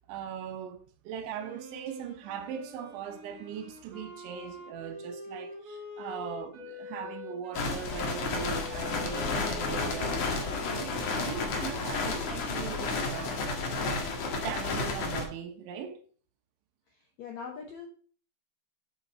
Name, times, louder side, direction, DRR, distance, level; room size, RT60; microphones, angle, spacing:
voice 1, 0.1-0.8 1.1-13.4 14.0-16.0, right 8 dB, 90° right, 3.6 m, -40 dB
Wind instrument woodwind instrument, 1.3-14.7, left 2 dB, 25° right, 3.6 m, -46 dB
sound 1, 7.5-15.3, left 3 dB, 55° left, 2.8 m, -32 dB
voice 2, 16.9-17.9, left 6 dB, 75° left, 1.6 m, -42 dB
8.5 x 8.5 x 4.3 m
omnidirectional pair, 5.2 m